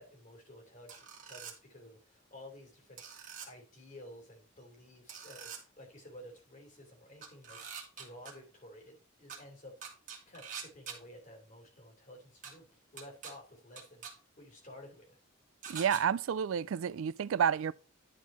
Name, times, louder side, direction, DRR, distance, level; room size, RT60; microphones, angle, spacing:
voice 1, 0.0-9.8 10.3-14.1 14.4-15.2, left 1 dB, 40° left, 3.0 m, -53 dB
sound 1, 0.9-1.5 3.0-3.5 5.1-5.6 7.2-8.3 9.3-9.4 9.8-11.0 12.4-12.5 13.0-13.3 13.8-14.1 15.6-16.0, right 7 dB, 40° right, 1.9 m, -44 dB
voice 2, 15.7-17.7, right 8 dB, 70° right, 0.3 m, -30 dB
10.0 x 4.6 x 4.2 m
head